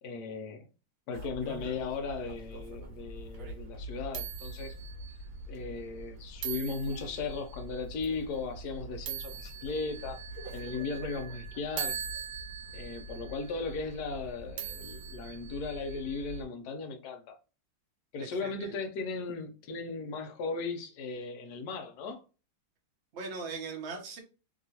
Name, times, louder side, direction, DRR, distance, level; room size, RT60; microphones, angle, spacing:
voice 1, 0.0-0.6 1.1-4.8 5.5-10.2 10.5-12.0 12.7-17.4 18.1-22.2, left 4 dB, 70° left, 1.0 m, -37 dB
sound 1, 1.1-16.4, right 5 dB, 75° right, 1.4 m, -42 dB
voice 2, 18.2-18.8 23.1-24.2, right 4 dB, 50° right, 0.8 m, -40 dB
3.0 x 2.9 x 2.7 m
omnidirectional pair, 2.1 m